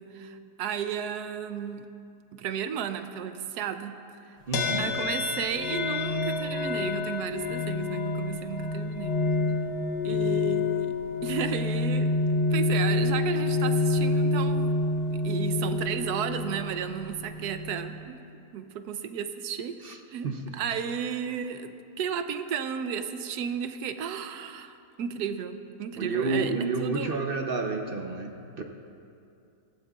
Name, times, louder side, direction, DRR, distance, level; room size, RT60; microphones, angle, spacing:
voice 1, 0.0-1.9 2.3-4.0 4.3-4.4 4.8-9.2 10.0-10.9 11.2-12.1 12.5-14.7 15.1-18.2 18.5-20.3 20.5-26.5 26.8-27.1, right 8 dB, 80° right, 9 dB, 1.2 m, -33 dB
sound 1, 4.5-18.1, left 3 dB, 80° left, 1.4 m, -28 dB
voice 2, 4.5-4.9 10.1-10.2 19.8-20.0 20.2-20.6 26.0-28.6, right 3 dB, 45° right, 3 dB, 0.7 m, -30 dB
18.5 x 16.0 x 2.4 m, 2.6 s
omnidirectional pair, 1.7 m